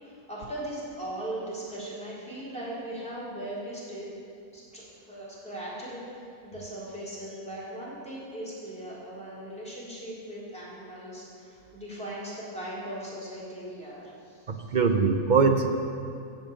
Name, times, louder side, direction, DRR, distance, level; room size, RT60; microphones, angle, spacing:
voice 1, 0.0-4.1 4.5-14.8, right 1 dB, 5° left, -8 dB, 3.6 m, -39 dB
voice 2, 14.5-15.7, right 5 dB, 50° right, 6 dB, 0.6 m, -22 dB
13.5 x 5.8 x 8.8 m, 2.6 s
omnidirectional pair, 1.6 m